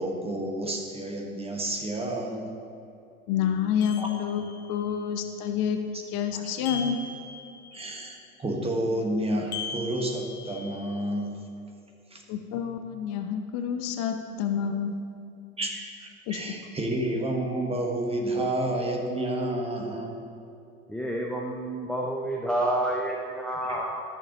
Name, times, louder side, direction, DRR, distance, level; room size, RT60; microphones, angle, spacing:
voice 1, 0.0-2.5 4.0-4.1 6.3-6.5 7.7-11.5 12.1-12.2 15.6-20.2, right 1 dB, 15° right, 1 dB, 1.3 m, -30 dB
voice 2, 3.3-5.8 6.1-7.0 12.3-15.0 16.3-16.4, left 8 dB, 45° left, 6 dB, 0.9 m, -28 dB
sound 1, 3.8-4.8 6.7-7.9 9.5-11.0, left 5 dB, 75° left, 1.1 m, -39 dB
voice 3, 20.9-24.0, right 1 dB, ahead, -2 dB, 0.4 m, -29 dB
13.5 x 6.6 x 3.0 m, 2.7 s
hypercardioid pair, 90°, 43 cm